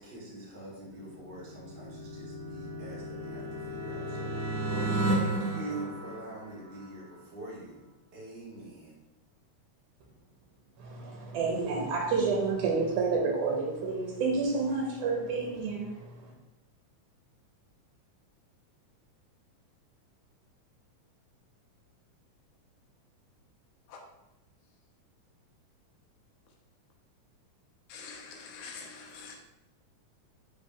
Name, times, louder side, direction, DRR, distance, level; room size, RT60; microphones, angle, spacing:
voice 1, 0.0-9.0, right 2 dB, 50° right, 1.4 m, -44 dB
sound 1, 1.1-6.8, right 2 dB, 30° right, 1.0 m, -33 dB
voice 2, 10.8-16.3, right 4 dB, 75° right, 2.1 m, -29 dB
voice 3, 27.9-29.4, left 5 dB, 80° left, 1.3 m, -45 dB
4.8 x 3.1 x 3.6 m
omnidirectional pair, 3.7 m